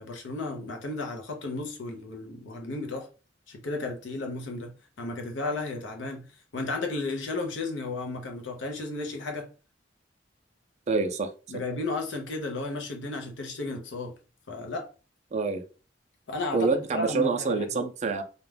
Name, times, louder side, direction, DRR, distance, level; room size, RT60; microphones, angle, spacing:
voice 1, 0.0-3.1 3.5-6.3 6.5-9.5 11.5-14.1 14.5-14.9 16.3-17.6, left 2 dB, 85° left, 0.6 m, -34 dB
voice 2, 10.9-11.3 15.3-15.6 16.5-18.2, right 4 dB, 40° right, 0.4 m, -26 dB
2.3 x 2.1 x 3.2 m
head